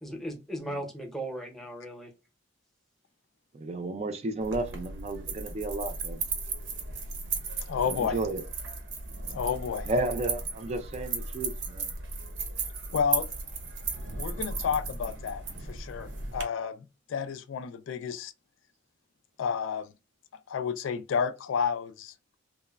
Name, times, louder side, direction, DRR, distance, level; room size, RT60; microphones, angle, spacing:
voice 1, 0.0-2.1, right 1 dB, ahead, 0.6 m, -37 dB
voice 2, 3.5-6.2 7.8-8.4 9.9-11.9, right 2 dB, 35° right, 0.4 m, -32 dB
sound 1, 4.4-16.4, right 4 dB, 90° right, 0.7 m, -36 dB
voice 3, 7.7-8.2 9.3-9.9 12.9-13.2 14.2-16.7 17.1-18.3 19.4-19.9 20.5-22.1, left 7 dB, 80° left, 0.3 m, -30 dB
3.0 x 2.0 x 2.2 m
head